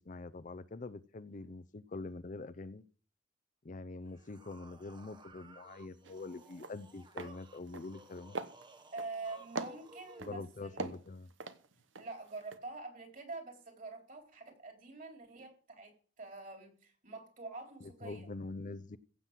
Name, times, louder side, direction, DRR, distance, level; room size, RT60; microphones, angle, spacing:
voice 1, 0.1-2.8 3.6-8.4 10.2-11.3 17.8-19.0, left 3 dB, 40° left, 0.5 m, -45 dB
sound 1, 4.0-10.4, right 2 dB, 25° right, 0.9 m, -57 dB
sound 2, 6.0-6.2 6.5-6.8 7.1-7.3 7.7-8.1 8.3-9.2 9.6-10.3 10.8-12.1 12.4-12.6, right 3 dB, 90° right, 1.0 m, -41 dB
voice 2, 8.9-10.8 12.0-15.9 16.2-18.3, right 3 dB, 45° right, 3.7 m, -46 dB
15.5 x 6.0 x 7.4 m
head